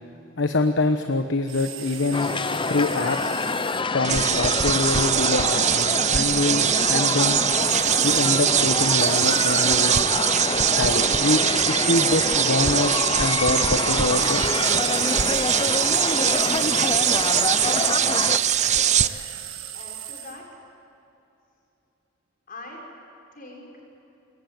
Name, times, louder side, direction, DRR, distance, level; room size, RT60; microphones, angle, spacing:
voice 1, 0.4-2.3 2.7-3.3 3.9-7.4 8.0-9.9 10.7-11.4 11.7-14.4, left 2 dB, 60° left, 7 dB, 1.1 m, -25 dB
sound 1, 1.5-3.8 7.6-8.4 9.0-9.8 14.1-20.4, right 9 dB, 65° right, 2.0 m, -37 dB
sound 2, 2.1-18.4, left 3 dB, 25° left, 0.7 m, -27 dB
sound 3, 4.0-19.1, right 9 dB, 35° right, 0.6 m, -22 dB
voice 2, 18.5-19.1 19.7-20.4 22.5-22.8 23.3-23.7, left 2 dB, 45° left, 0 dB, 6.2 m, -42 dB
27.5 x 22.0 x 9.4 m, 2.9 s
head